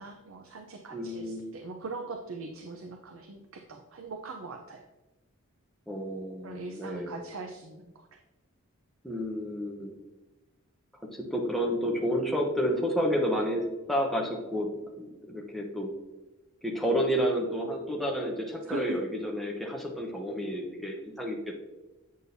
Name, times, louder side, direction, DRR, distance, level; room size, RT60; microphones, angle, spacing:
voice 1, 0.0-4.9 6.4-8.2 18.7-19.0, right 4 dB, 65° right, 4 dB, 0.5 m, -41 dB
voice 2, 0.9-1.5 5.9-7.2 9.0-10.0 11.1-15.9 16.6-21.5, equal, ahead, -1 dB, 0.8 m, -30 dB
8.2 x 6.1 x 2.7 m, 1.1 s
head